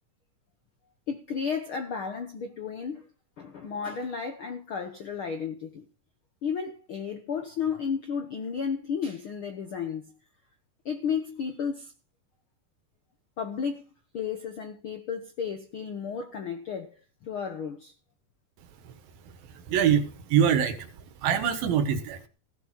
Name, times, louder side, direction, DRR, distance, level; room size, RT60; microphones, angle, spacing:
voice 1, 1.1-3.1 3.4-5.9 6.4-10.1 10.8-11.9 13.4-13.9 14.1-16.9 17.2-17.9, left 6 dB, 70° left, 1.2 m, -33 dB
voice 2, 19.3-20.9 21.2-22.3, right 8 dB, 90° right, 3.2 m, -25 dB
16.0 x 7.3 x 6.0 m
omnidirectional pair, 4.0 m